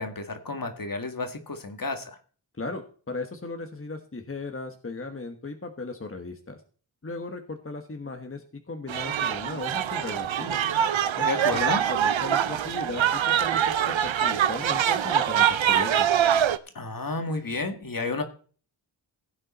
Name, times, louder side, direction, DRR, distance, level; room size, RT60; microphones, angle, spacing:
voice 1, 0.0-2.2 11.2-11.8 16.7-18.2, left 3 dB, 45° left, 6 dB, 1.8 m, -31 dB
voice 2, 2.6-6.6 7.0-10.6 11.2-16.1, left 3 dB, 30° left, 5 dB, 1.4 m, -37 dB
sound 1, 8.9-16.6, right 9 dB, 90° right, 0.8 m, -24 dB
16.0 x 8.8 x 4.2 m, 0.41 s
wide cardioid pair, 85°, 45 cm